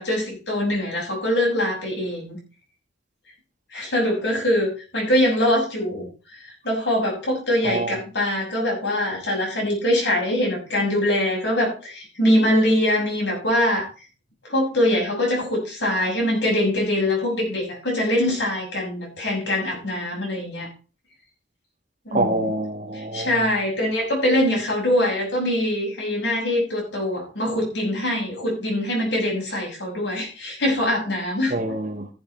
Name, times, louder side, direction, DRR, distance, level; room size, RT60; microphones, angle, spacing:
voice 1, 0.0-2.4 3.7-6.1 6.4-13.9 14.4-20.7 22.0-22.5 22.9-31.5, left 1 dB, 70° left, 6.8 m, -23 dB
voice 2, 7.6-8.0 22.1-23.4 31.5-32.1, right 2 dB, 45° right, 1.9 m, -26 dB
15.0 x 7.8 x 4.6 m
head